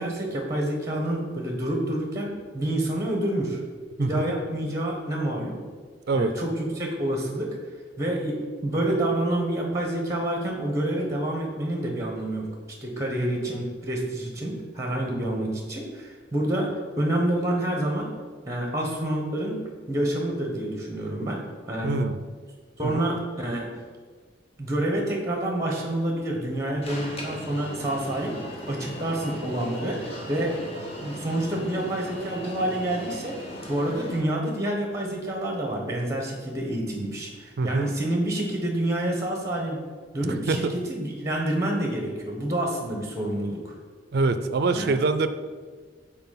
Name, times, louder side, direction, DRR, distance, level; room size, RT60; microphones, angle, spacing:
voice 1, 0.0-3.6 4.0-5.6 6.1-7.6 8.0-12.5 12.8-18.1 18.5-19.6 19.9-21.4 21.7-22.0 22.8-23.7 24.6-28.4 28.7-30.5 31.0-33.4 33.7-39.8 40.1-40.6 40.9-43.7 44.7-44.9, right 1 dB, 15° right, 1 dB, 1.1 m, -28 dB
voice 2, 4.0-4.3 6.1-6.4 15.1-15.3 21.8-22.2 22.8-23.1 37.6-37.9 40.3-40.7 44.1-45.3, right 3 dB, 55° right, 11 dB, 0.4 m, -25 dB
Alarm, 26.8-34.2, equal, 35° left, 1.1 m, -38 dB
5.8 x 4.3 x 5.7 m, 1.5 s
head